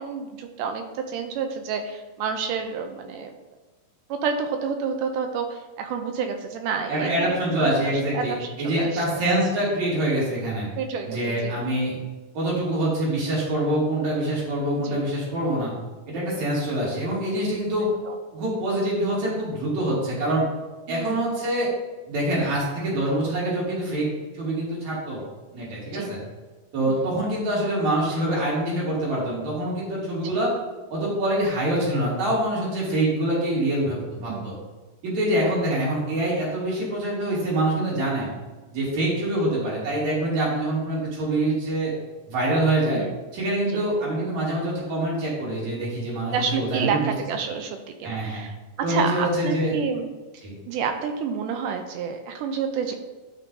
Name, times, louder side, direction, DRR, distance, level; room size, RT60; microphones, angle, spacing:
voice 1, 0.0-3.3 4.1-7.3 7.6-9.2 10.8-11.6 14.8-15.0 18.1-18.2 20.9-21.2 25.9-26.1 26.8-27.0 34.3-34.5 42.9-43.1 43.7-43.8 46.3-50.1 50.7-53.0, right 6 dB, 80° right, 5 dB, 2.1 m, -29 dB
voice 2, 6.9-10.7 11.1-12.0 12.3-15.7 16.1-17.9 18.3-20.5 20.9-21.7 22.1-24.1 24.3-25.2 25.5-26.2 26.7-30.5 30.9-34.6 35.0-38.3 38.7-41.9 42.3-43.0 43.3-47.1 48.0-48.4 48.8-49.7 50.4-50.5, right 1 dB, 55° right, -6 dB, 3.8 m, -25 dB
12.0 x 6.0 x 2.7 m, 1.2 s
omnidirectional pair, 4.0 m